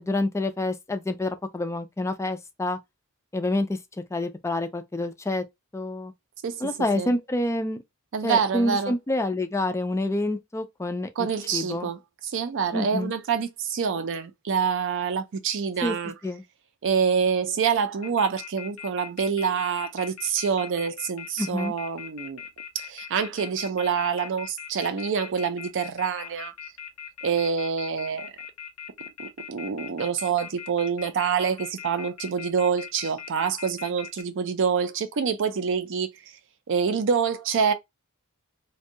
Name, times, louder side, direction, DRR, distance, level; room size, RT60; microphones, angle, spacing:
voice 1, 0.0-2.8 3.3-3.8 4.1-5.4 5.7-6.1 6.6-7.8 8.2-11.9 12.7-13.1 15.8-16.0 16.2-16.4 21.4-21.7, left 1 dB, 15° left, 0.3 m, -27 dB
voice 2, 6.4-7.1 8.1-8.9 11.2-16.1 16.8-22.4 22.7-26.5 27.2-28.3 29.2-36.3 36.7-37.7, right 6 dB, 60° right, 0.4 m, -26 dB
sound 1, 18.0-34.2, left 8 dB, 85° left, 0.6 m, -40 dB
2.6 x 2.2 x 2.7 m
head